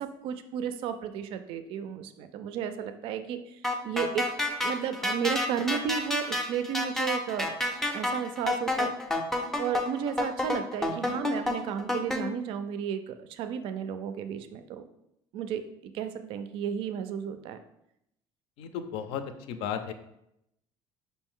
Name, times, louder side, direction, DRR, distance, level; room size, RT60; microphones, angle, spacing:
voice 1, 0.0-4.3 4.6-7.6 7.9-8.9 9.6-14.9 15.3-15.6 15.9-17.6, right 8 dB, 65° right, 10 dB, 0.4 m, -33 dB
sound 1, 3.6-12.2, left 2 dB, 5° left, 0.4 m, -29 dB
voice 2, 18.6-19.2 19.5-19.9, left 8 dB, 80° left, 9 dB, 0.4 m, -34 dB
5.3 x 2.6 x 3.6 m, 0.80 s
cardioid pair, 155°, 10 cm